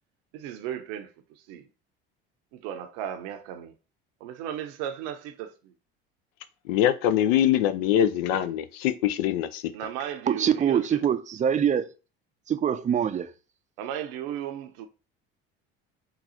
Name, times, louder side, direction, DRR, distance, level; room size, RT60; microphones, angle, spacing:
voice 1, 0.3-1.1 1.5-1.7 2.5-3.7 4.2-5.7 9.7-11.0 13.8-14.9, right 10 dB, 70° right, 0.7 m, -35 dB
voice 2, 6.7-9.7, left 11 dB, 75° left, 0.5 m, -23 dB
voice 3, 10.3-11.9 12.5-13.3, right 8 dB, 25° right, 0.4 m, -24 dB
3.8 x 2.3 x 4.2 m
hypercardioid pair, 75°, 30 cm